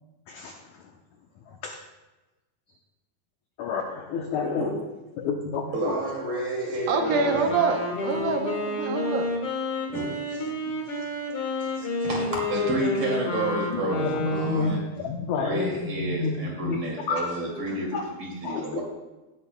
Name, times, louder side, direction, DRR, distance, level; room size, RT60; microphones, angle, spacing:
voice 1, 1.5-1.8 3.6-4.7 5.2-6.0 8.2-8.3 13.7-17.2 17.9-18.0 18.4-18.8, left 4 dB, 80° left, 2 dB, 1.7 m, -30 dB
voice 2, 5.7-7.5 9.9-10.5 10.8-11.0 11.8-14.8 15.4-18.8, right 1 dB, 40° right, -3 dB, 2.8 m, -30 dB
Wind instrument woodwind instrument, 6.8-14.8, left 2 dB, 60° left, 1.5 m, -30 dB
voice 3, 6.9-9.4, right 5 dB, 75° right, 4 dB, 2.5 m, -26 dB
17.0 x 9.9 x 2.2 m, 1.1 s
omnidirectional pair, 4.4 m